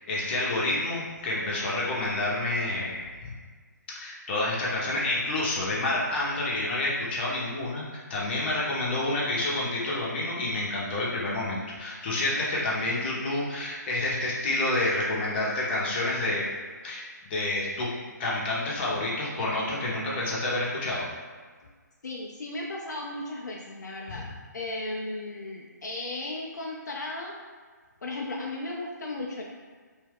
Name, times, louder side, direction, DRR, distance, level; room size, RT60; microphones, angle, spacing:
voice 1, 0.1-3.3 3.9-16.4 16.8-17.9 18.2-21.1 24.1-24.3, left 2 dB, 35° left, -6 dB, 0.7 m, -29 dB
voice 2, 22.0-24.3 24.5-27.3 28.0-29.4, left 2 dB, 70° left, -2 dB, 0.4 m, -35 dB
2.6 x 2.3 x 3.5 m, 1.5 s
figure-of-eight pair, 145°, 10 cm